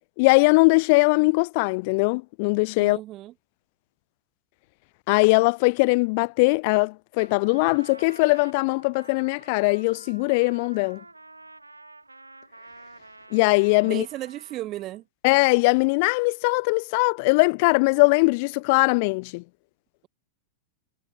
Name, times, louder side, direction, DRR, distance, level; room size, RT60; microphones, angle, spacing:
voice 1, 0.2-3.0 5.1-11.0 13.3-14.0 15.2-19.4, left 29 dB, 45° left, 0.4 m, -21 dB
voice 2, 2.8-3.3 13.8-15.0, right 15 dB, 35° right, 2.6 m, -34 dB
Trumpet, 7.2-15.0, right 2 dB, 85° right, 2.2 m, -48 dB
figure-of-eight pair, 90°, 0 cm